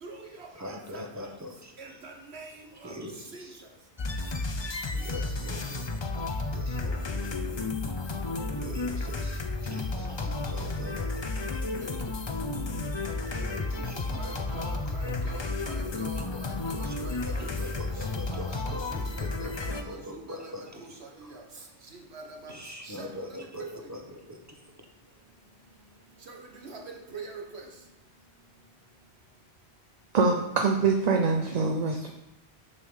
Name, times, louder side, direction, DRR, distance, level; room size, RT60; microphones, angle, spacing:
voice 1, 0.0-1.3 1.8-2.9 3.3-3.5 8.3-8.4 9.0-9.1 10.2-10.3 11.8-11.9 13.3-17.5 18.3-20.5 20.8-21.4 22.1-22.5 22.8-23.3 23.6-23.7 26.3-26.4 26.6-26.8 27.1-27.7, right 3 dB, 75° right, 1 dB, 1.6 m, -44 dB
voice 2, 0.5-2.0 2.8-3.6 4.9-5.9 6.5-7.2 8.6-11.8 13.5-14.2 15.2-15.3 16.2-16.4 16.7-20.9 21.2-21.4 22.5-24.7, left 1 dB, 15° right, 2 dB, 1.0 m, -43 dB
sound 1, 4.0-19.8, left 3 dB, 30° left, 0.6 m, -32 dB
voice 3, 30.1-32.1, right 4 dB, 45° right, 3 dB, 0.7 m, -24 dB
6.7 x 5.4 x 6.3 m, 0.94 s
omnidirectional pair, 1.1 m